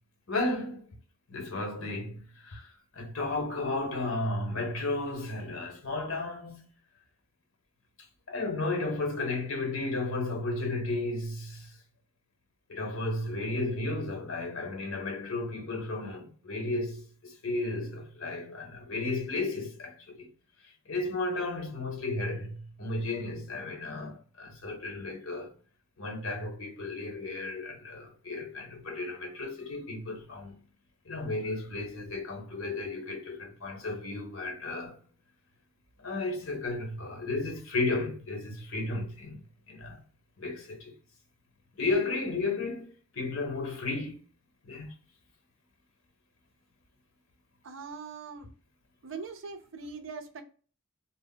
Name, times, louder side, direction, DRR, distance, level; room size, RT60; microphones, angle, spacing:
voice 1, 0.3-0.9 1.3-6.6 8.3-11.8 12.7-20.3 20.9-25.5 26.0-30.6 31.0-35.0 36.0-40.0 40.4-40.9 41.7-44.2 44.6-44.9, left 2 dB, 85° left, 0.9 m, -34 dB
voice 2, 47.6-48.5 49.0-50.4, right 5 dB, 65° right, 0.5 m, -41 dB
2.0 x 2.0 x 3.7 m
head